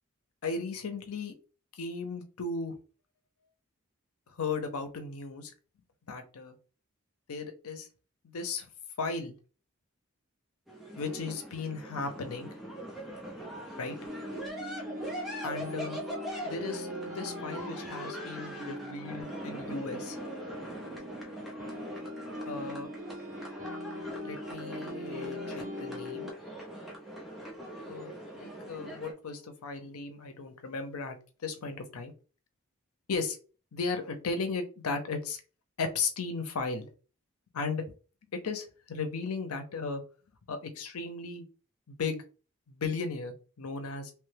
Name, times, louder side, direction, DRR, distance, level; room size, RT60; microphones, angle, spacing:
voice 1, 0.4-1.3 1.8-2.8 4.3-5.5 6.1-6.6 7.3-7.9 8.2-8.7 9.0-9.3 11.0-12.5 13.8-14.0 15.4-16.0 16.4-20.2 22.5-22.9 24.2-26.3 27.8-32.1 33.1-33.4 33.7-35.4 35.8-36.9 37.5-37.9 38.3-40.0 40.5-41.4 41.9-42.2 42.7-44.1, left 4 dB, 85° left, 7 dB, 0.6 m, -36 dB
sound 1, 10.7-29.1, equal, ahead, 0.5 m, -42 dB
sound 2, 14.1-26.3, left 1 dB, 40° right, 1.2 m, -41 dB
3.0 x 2.2 x 3.2 m, 0.36 s
head